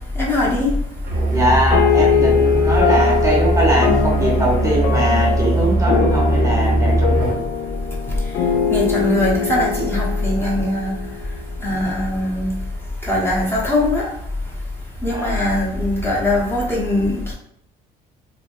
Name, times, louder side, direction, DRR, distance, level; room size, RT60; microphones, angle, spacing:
voice 1, 0.2-0.7 8.7-10.9 11.6-12.5 13.1-14.1 15.0-17.3, left 1 dB, 15° left, -5 dB, 0.9 m, -20 dB
Musical instrument, 1.0-7.4, right 2 dB, 65° right, 0.9 m, -20 dB
voice 2, 1.3-7.4 15.1-15.4, right 1 dB, 20° right, -3 dB, 0.8 m, -21 dB
sound 1, 1.7-11.5, left 7 dB, 75° left, 0.5 m, -22 dB
3.2 x 2.1 x 2.5 m, 0.73 s
cardioid pair, 110°, 17 cm